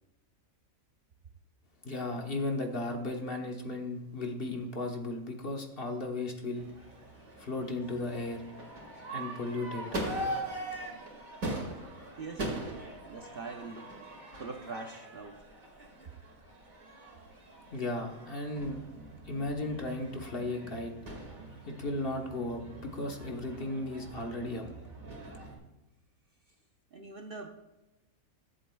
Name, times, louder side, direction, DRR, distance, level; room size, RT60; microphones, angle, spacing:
voice 1, 1.8-6.7 7.4-8.7 9.1-10.2 17.7-18.8 19.2-20.9 21.7-24.6, left 2 dB, 45° left, 2 dB, 1.3 m, -35 dB
Crowd / Fireworks, 6.6-25.6, right 1 dB, 70° right, 2.6 m, -42 dB
voice 2, 12.2-12.5 13.0-13.9 14.3-15.4 26.9-27.5, right 3 dB, 50° right, 3 dB, 0.8 m, -42 dB
22.0 x 7.8 x 2.3 m, 0.96 s
omnidirectional pair, 1.5 m